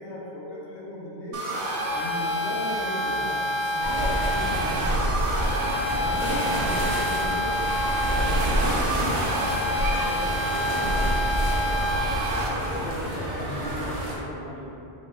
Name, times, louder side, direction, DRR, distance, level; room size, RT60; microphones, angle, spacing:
voice 1, 0.0-1.5 1.9-5.4 6.0-7.6 8.1-11.1, left 1 dB, 85° left, -6 dB, 0.9 m, -36 dB
sound 1, 1.3-12.5, equal, 85° right, 0.9 m, -28 dB
sound 2, 3.8-14.1, equal, 60° right, 0.8 m, -27 dB
voice 2, 12.5-14.7, equal, 35° left, -10 dB, 1.2 m, -37 dB
3.4 x 2.8 x 2.8 m, 2.8 s
omnidirectional pair, 1.1 m